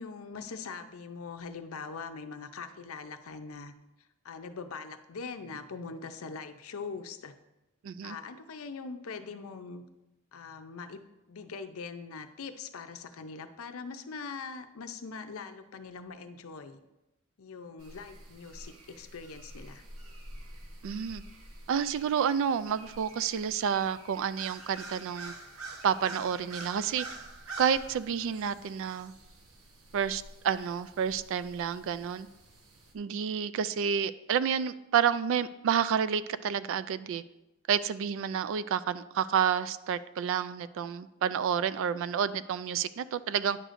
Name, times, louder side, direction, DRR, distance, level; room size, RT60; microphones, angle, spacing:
voice 1, 0.0-3.7 4.2-7.3 8.0-9.8 10.3-11.0 11.3-16.8 17.4-19.8, left 4 dB, 75° left, 9 dB, 0.6 m, -42 dB
voice 2, 7.8-8.2 20.8-21.2 21.7-25.3 25.8-27.1 27.6-29.1 29.9-32.3 32.9-37.2 37.7-43.6, right 8 dB, 65° right, 15 dB, 0.3 m, -29 dB
sound 1, 17.8-32.9, right 2 dB, 85° right, 1.1 m, -48 dB
9.9 x 6.4 x 2.6 m, 0.96 s
head